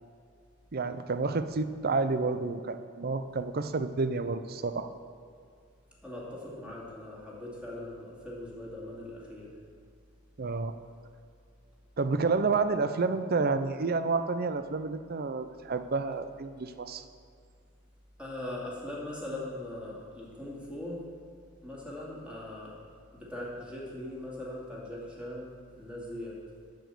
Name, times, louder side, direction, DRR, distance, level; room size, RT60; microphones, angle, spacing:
voice 1, 0.7-4.9 10.4-10.8 12.0-17.0, right 4 dB, 50° right, 10 dB, 0.6 m, -30 dB
voice 2, 6.0-9.5 18.2-21.0 21.6-22.7 23.1-26.4, left 1 dB, 5° right, -5 dB, 2.4 m, -40 dB
12.0 x 5.1 x 7.6 m, 2.2 s
head